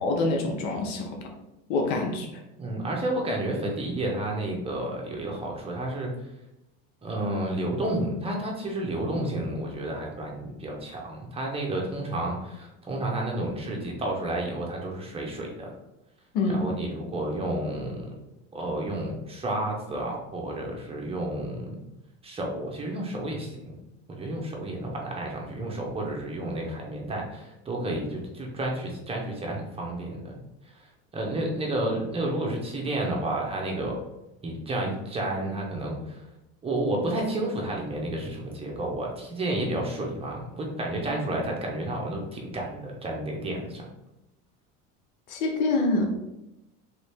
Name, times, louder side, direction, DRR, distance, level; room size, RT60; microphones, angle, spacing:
voice 1, 0.0-1.3 1.7-2.3 16.3-16.7 45.3-46.1, left 3 dB, 80° left, 1 dB, 0.8 m, -26 dB
voice 2, 2.6-6.1 7.0-15.7 16.5-18.0 18.5-21.8 22.2-23.8 24.1-30.4 30.8-34.0 34.4-36.2 36.6-43.8, right 1 dB, 15° right, -1 dB, 0.8 m, -31 dB
3.2 x 2.7 x 3.4 m, 0.92 s
supercardioid pair, 125°, 34 cm